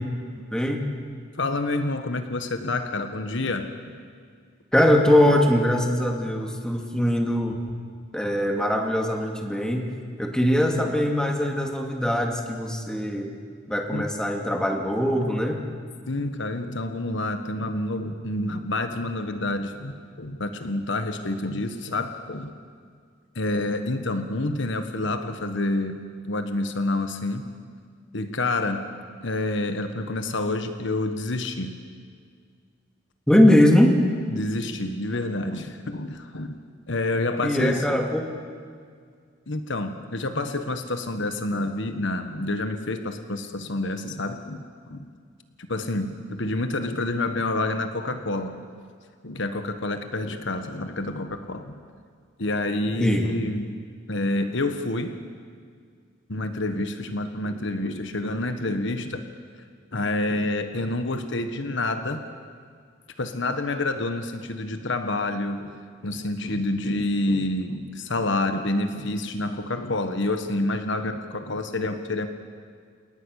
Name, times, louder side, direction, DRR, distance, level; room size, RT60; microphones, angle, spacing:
voice 1, 0.5-0.9 4.7-7.6 8.1-9.9 10.2-13.3 13.7-15.6 33.3-34.0 37.4-38.2 53.0-53.3, left 1 dB, 5° left, 2 dB, 2.2 m, -21 dB
voice 2, 1.4-3.7 13.9-14.0 16.1-22.5 23.3-27.5 28.1-28.9 29.2-31.8 34.3-36.6 36.9-38.0 39.5-45.1 45.6-48.6 49.2-51.7 52.4-53.7 54.1-55.2 56.3-59.2 59.9-62.2 63.2-65.7 66.0-72.3, left 2 dB, 65° left, 8 dB, 1.4 m, -28 dB
29.5 x 18.5 x 6.5 m, 2.1 s
head